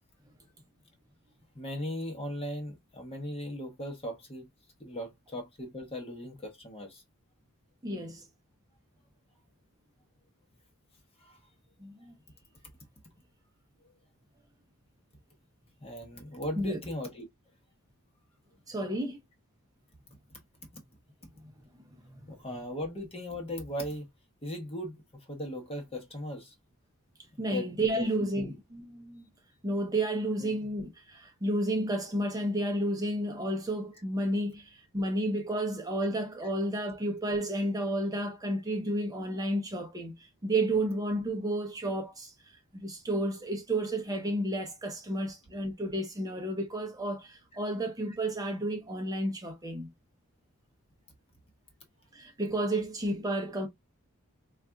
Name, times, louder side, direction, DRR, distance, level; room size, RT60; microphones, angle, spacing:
voice 1, 1.5-4.5 4.8-7.0 11.2-11.4 15.8-17.3 20.7-20.8 22.3-24.1 24.4-25.0 25.3-26.5 27.4-28.5 30.4-30.6, left 1 dB, 25° left, 0.9 m, -38 dB
voice 2, 7.8-8.3 11.8-12.1 16.6-16.8 18.7-19.2 21.4-21.5 22.0-22.3 27.4-29.2 29.6-49.9 52.1-53.7, right 1 dB, 15° right, 0.6 m, -31 dB
4.0 x 2.4 x 2.2 m
head